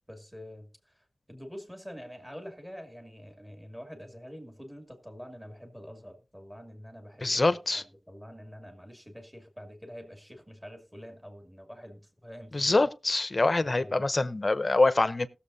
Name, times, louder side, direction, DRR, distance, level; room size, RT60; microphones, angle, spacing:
voice 1, 0.1-7.4 7.7-12.9 13.6-14.0, equal, 10° right, 2.4 m, -46 dB
voice 2, 7.2-7.8 12.5-15.3, left 2 dB, 45° left, 0.7 m, -25 dB
19.0 x 7.1 x 2.7 m
wide cardioid pair, 65°, 0 cm